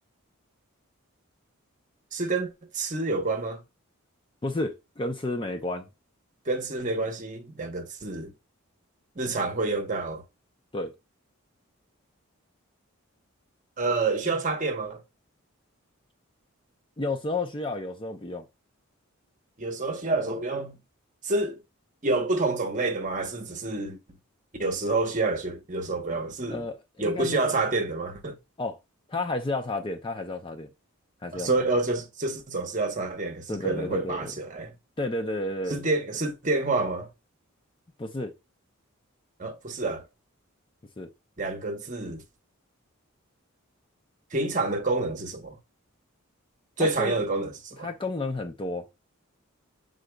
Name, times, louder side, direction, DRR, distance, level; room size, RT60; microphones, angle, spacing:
voice 1, 2.1-3.6 6.5-8.3 9.2-10.2 13.8-15.0 19.6-20.8 21.2-21.6 22.0-24.0 24.6-26.7 27.0-28.4 31.3-34.7 35.7-37.1 39.4-40.1 41.4-42.2 44.3-45.6 46.8-47.9, right 3 dB, 35° right, 0.8 m, -28 dB
voice 2, 4.4-5.9 10.7-10.9 17.0-18.5 26.5-27.5 28.6-28.8 29.1-30.7 31.2-31.5 33.5-34.3 35.0-35.8 38.0-38.3 41.0-41.1 46.8-47.1 47.8-48.8, left 2 dB, 20° left, 0.4 m, -31 dB
6.3 x 3.8 x 2.2 m
head